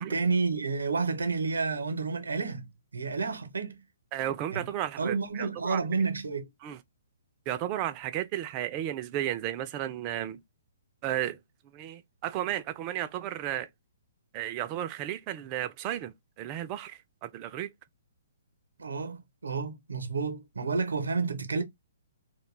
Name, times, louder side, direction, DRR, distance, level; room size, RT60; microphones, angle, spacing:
voice 1, 0.0-2.7 2.9-3.8 4.5-4.7 5.0-6.5 18.8-21.6, right 4 dB, 90° right, 0.6 m, -30 dB
voice 2, 4.1-5.8 6.6-6.8 7.5-10.4 11.0-11.4 11.7-13.7 14.3-17.7, right 12 dB, 30° right, 0.3 m, -33 dB
2.3 x 2.2 x 3.1 m
hypercardioid pair, 140°, 0 cm